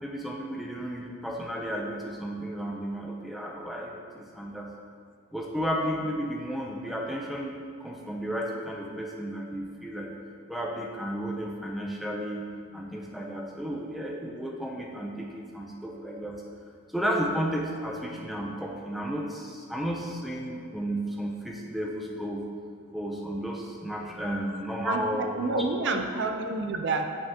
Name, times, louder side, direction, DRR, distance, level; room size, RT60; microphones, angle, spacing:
voice 1, 0.0-4.7 5.3-7.5 7.8-10.2 10.5-12.4 12.7-16.4 16.9-22.5 22.9-26.0, equal, ahead, -1 dB, 0.5 m, -33 dB
voice 2, 24.8-27.1, right 3 dB, 55° right, 5 dB, 0.5 m, -29 dB
9.0 x 5.9 x 2.8 m, 2.2 s
head